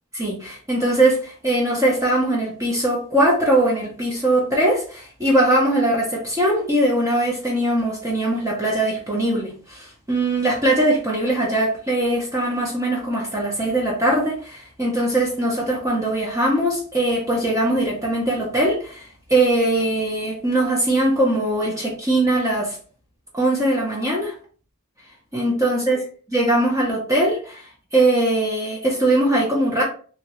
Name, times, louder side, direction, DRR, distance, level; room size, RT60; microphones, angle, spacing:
voice 1, 0.1-22.8 23.3-24.3 25.3-26.0 26.3-29.8, right 1 dB, 15° right, -4 dB, 0.7 m, -21 dB
3.0 x 2.8 x 3.0 m, 0.42 s
head